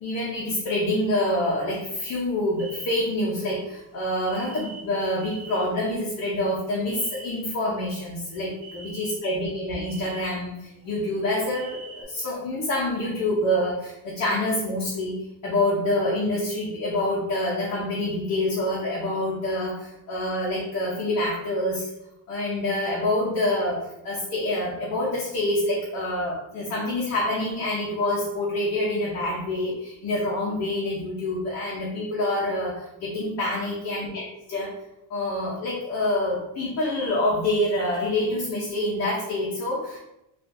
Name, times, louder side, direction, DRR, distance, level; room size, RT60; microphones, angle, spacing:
voice 1, 0.0-15.2 15.4-21.9 22.3-34.7 35.1-40.0, left 1 dB, 45° left, -5 dB, 0.8 m, -26 dB
sound 1, 2.6-3.3 4.3-5.7 6.1-7.4 8.1-8.2 8.6-9.4 9.8-10.3 11.1-12.0, right 4 dB, 45° right, 0.7 m, -43 dB
3.6 x 2.5 x 2.6 m, 0.87 s
cardioid pair, 165°, 37 cm